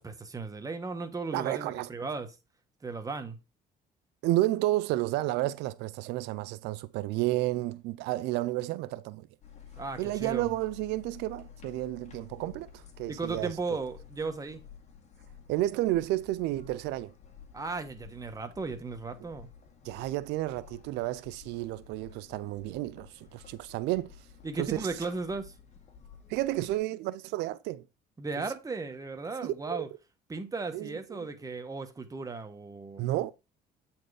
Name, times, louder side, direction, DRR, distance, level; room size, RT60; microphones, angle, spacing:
voice 1, 0.0-2.3 2.8-3.4 9.7-10.5 13.1-14.6 17.5-19.5 24.4-25.5 28.2-29.9 30.3-33.1, right 4 dB, 20° right, 1.4 m, -36 dB
voice 2, 1.3-1.9 4.2-9.3 10.0-13.6 15.5-17.1 19.8-24.2 24.6-24.8 26.3-27.9 28.4-28.5 29.4-29.9 30.7-31.3 33.0-33.3, right 16 dB, 90° right, 0.4 m, -31 dB
sound 1, 9.4-26.8, left 7 dB, 40° left, 2.1 m, -52 dB
8.4 x 4.5 x 4.8 m
cardioid pair, 110°, 17 cm